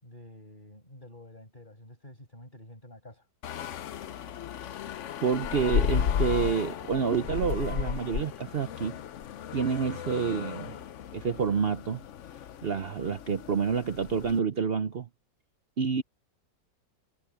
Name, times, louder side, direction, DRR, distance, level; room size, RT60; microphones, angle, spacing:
voice 1, 0.0-3.3, left 1 dB, 25° left, 7.1 m, -49 dB
sound 1, 3.4-14.4, left 9 dB, 60° left, 0.8 m, -34 dB
voice 2, 5.2-9.0 9.5-10.7 11.1-12.0 12.6-15.1 15.8-16.0, right 6 dB, 60° right, 0.6 m, -28 dB
omnidirectional pair, 1.9 m